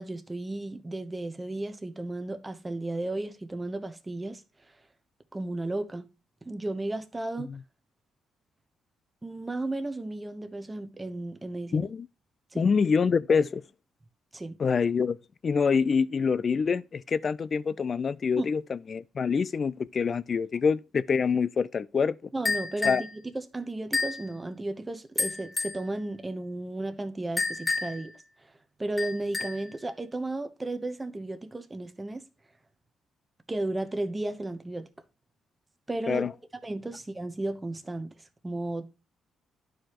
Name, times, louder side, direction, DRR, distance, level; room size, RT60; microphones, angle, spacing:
voice 1, 0.0-4.4 5.3-6.1 6.4-7.6 9.2-11.9 12.5-12.7 14.3-14.6 18.4-18.5 22.3-28.1 28.8-32.2 33.5-34.9 35.9-36.3 36.6-38.8, right 2 dB, 15° right, 0.9 m, -34 dB
voice 2, 11.7-12.1 12.6-13.6 14.6-15.2 15.4-22.2 22.8-23.0 36.1-36.3, left 5 dB, 45° left, 0.4 m, -26 dB
sound 1, 22.5-23.1 23.9-24.2 25.2-25.8 27.4-28.1 29.0-29.7, left 3 dB, 20° left, 2.3 m, -30 dB
11.0 x 4.9 x 3.0 m
cardioid pair, 90°, 0 cm